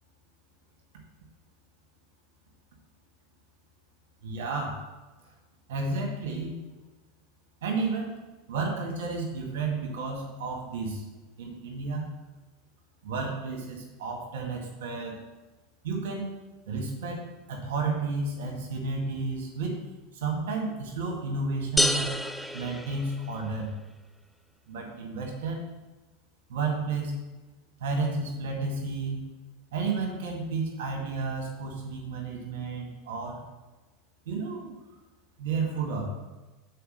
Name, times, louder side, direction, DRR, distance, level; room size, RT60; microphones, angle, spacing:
voice 1, 4.2-4.9 5.7-6.6 7.6-8.1 8.5-11.0 11.4-12.1 13.0-15.1 15.8-16.3 16.7-19.8 20.1-22.2 22.5-23.7 24.7-25.6 26.5-27.1 27.8-29.3 29.7-33.4 34.3-34.7 35.4-36.1, right 3 dB, 65° right, 1 dB, 2.0 m, -32 dB
sound 1, 21.8-23.6, left 1 dB, ahead, 0.5 m, -28 dB
6.7 x 4.7 x 6.7 m, 1.2 s
hypercardioid pair, 85°, 0 cm